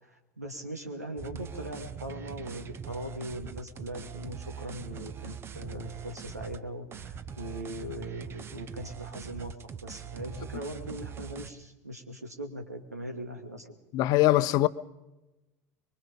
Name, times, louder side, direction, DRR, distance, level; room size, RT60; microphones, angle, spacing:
voice 1, 0.0-9.5 9.8-13.7, equal, 85° right, 2.6 m, -40 dB
sound 1, 1.2-6.6 6.9-11.5, right 7 dB, 30° right, 1.1 m, -42 dB
voice 2, 13.9-14.7, left 16 dB, 45° left, 0.8 m, -22 dB
24.5 x 23.5 x 5.4 m
figure-of-eight pair, 75°, 8 cm